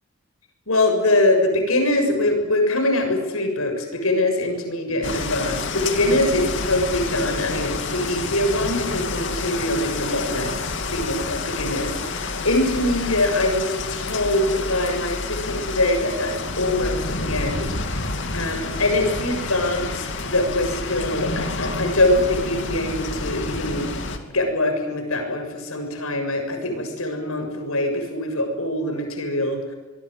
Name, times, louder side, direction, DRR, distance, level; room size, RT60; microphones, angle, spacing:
voice 1, 0.7-10.6 10.9-23.9 24.3-29.6, left 1 dB, 90° left, 5 dB, 6.9 m, -23 dB
sound 1, 5.0-24.2, left 3 dB, 60° left, 2.8 m, -29 dB
25.5 x 22.5 x 9.5 m, 1.2 s
head